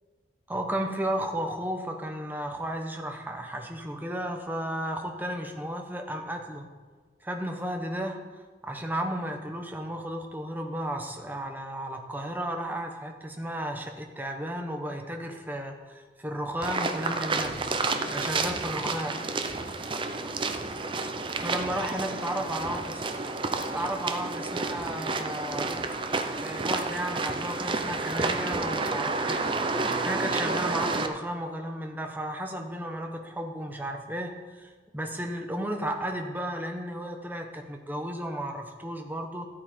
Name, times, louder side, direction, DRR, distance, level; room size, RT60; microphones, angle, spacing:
voice 1, 0.5-6.7 7.2-17.6 18.1-19.2 21.4-23.0 23.6-25.9 26.3-29.5 30.0-39.5, right 1 dB, 10° right, 3 dB, 0.9 m, -34 dB
sound 1, 16.6-31.1, right 3 dB, 30° right, 0.6 m, -30 dB
13.5 x 8.7 x 4.4 m, 1.4 s
head